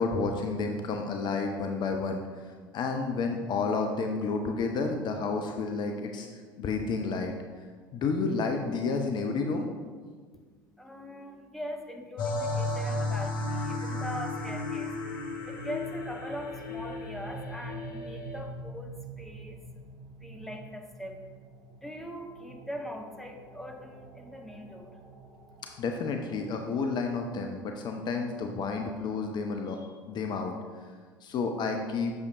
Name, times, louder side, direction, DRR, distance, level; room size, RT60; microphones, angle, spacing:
voice 1, 0.0-6.3 6.6-7.3 7.9-9.7 25.8-29.8 30.1-30.6 31.2-32.1, left 4 dB, 40° left, 4 dB, 0.6 m, -30 dB
voice 2, 10.3-25.6, equal, ahead, 2 dB, 0.9 m, -42 dB
sound 1, 12.2-18.4, left 2 dB, 70° left, 0.9 m, -34 dB
sound 2, 13.8-28.5, right 2 dB, 60° right, 0.9 m, -47 dB
8.1 x 6.5 x 2.5 m, 1.5 s
figure-of-eight pair, 65°, 12 cm